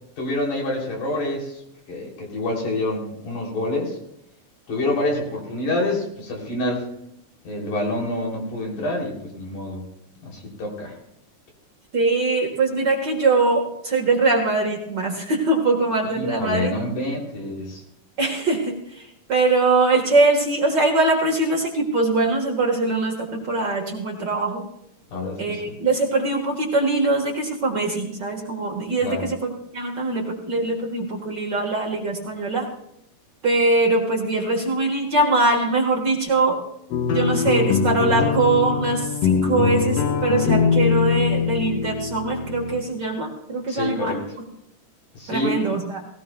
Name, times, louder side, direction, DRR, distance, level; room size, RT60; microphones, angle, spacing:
voice 1, 0.2-1.6 1.9-4.0 4.7-6.9 7.4-9.9 10.2-11.0 16.2-17.8 25.1-25.7 29.0-29.3 43.7-44.2 45.1-45.6, left 2 dB, 85° left, -1 dB, 4.6 m, -27 dB
voice 2, 11.9-16.7 18.2-24.6 25.4-32.7 33.4-36.6 37.1-44.2 45.3-46.0, right 3 dB, 45° right, 0 dB, 1.7 m, -22 dB
sound 1, 36.9-42.8, left 6 dB, 65° left, 1.7 m, -22 dB
19.0 x 17.0 x 2.3 m, 0.78 s
omnidirectional pair, 3.5 m